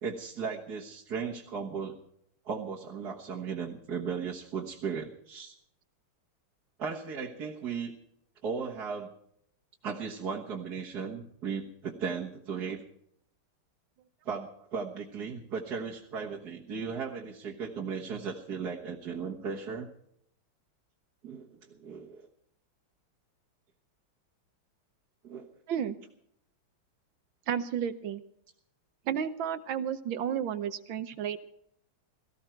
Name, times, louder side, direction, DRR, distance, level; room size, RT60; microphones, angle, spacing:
voice 1, 0.0-2.0 2.5-5.5 6.8-7.9 8.4-9.1 9.8-12.8 14.3-19.9 21.2-22.3 25.2-25.5, right 5 dB, 50° right, -3 dB, 1.9 m, -36 dB
voice 2, 27.5-28.2 29.1-31.5, right 8 dB, 70° right, 12 dB, 1.5 m, -32 dB
17.5 x 16.0 x 4.5 m, 0.71 s
omnidirectional pair, 2.3 m